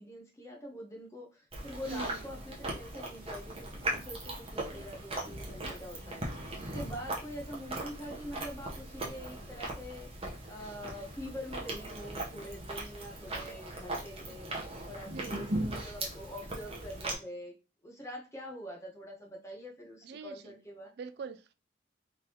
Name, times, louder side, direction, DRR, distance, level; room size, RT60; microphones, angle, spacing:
voice 1, 0.0-6.3 6.6-10.1 10.5-14.5 14.9-17.5 17.8-20.9, equal, 15° left, 0.9 m, -45 dB
Chewing mastication, 1.5-17.1, right 1 dB, 30° right, 1.1 m, -39 dB
voice 2, 1.9-2.2 15.1-15.6 20.0-20.6 21.0-21.5, right 5 dB, 60° right, 0.3 m, -43 dB
3.6 x 3.2 x 3.0 m
head